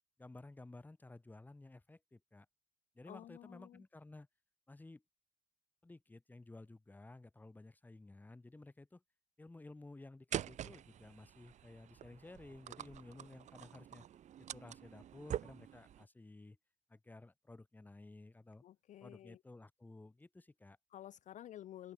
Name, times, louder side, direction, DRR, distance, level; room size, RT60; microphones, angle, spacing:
voice 1, 0.2-2.5 2.9-4.3 4.7-5.0 5.8-9.0 9.4-14.1 14.5-16.6 16.9-18.6 19.0-20.8, left 2 dB, 10° left, 0.9 m, -55 dB
voice 2, 3.0-3.8 18.6-19.4 20.9-21.9, left 12 dB, 45° left, 0.4 m, -52 dB
sound 1, 10.3-16.0, right 10 dB, 45° right, 0.5 m, -46 dB
open air
cardioid pair, 110°, 17 cm